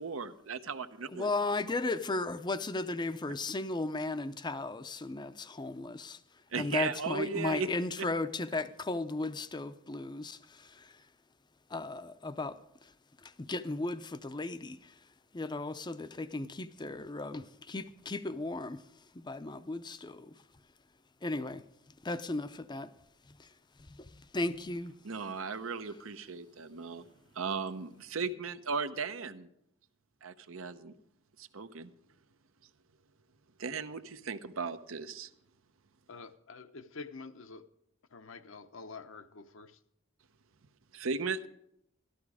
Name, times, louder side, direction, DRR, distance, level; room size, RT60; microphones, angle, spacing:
voice 1, 0.0-1.3 3.3-3.4 6.5-7.7 8.0-8.1 25.0-27.0 27.3-29.5 30.2-31.0 31.4-31.9 33.6-35.3 40.9-41.5, right 5 dB, 75° right, 0.8 m, -36 dB
voice 2, 1.1-6.2 6.6-11.0 11.7-12.9 13.2-14.9 15.3-18.8 19.1-20.3 21.2-21.6 22.0-22.9 23.4-23.5 23.8-25.0, left 2 dB, 20° left, 0.6 m, -36 dB
voice 3, 36.1-37.6 38.1-39.8, left 4 dB, 65° left, 0.8 m, -47 dB
13.0 x 13.0 x 4.8 m
head